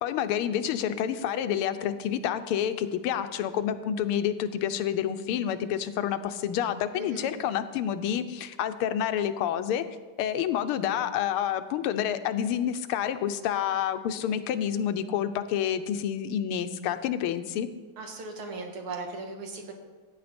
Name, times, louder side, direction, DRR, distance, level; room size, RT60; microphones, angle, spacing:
voice 1, 0.0-9.8 10.2-17.7, left 9 dB, 90° left, 11 dB, 1.6 m, -28 dB
voice 2, 7.0-7.3 18.0-19.7, right 3 dB, 80° right, 3 dB, 2.4 m, -38 dB
14.5 x 9.3 x 4.3 m, 1.3 s
omnidirectional pair, 2.4 m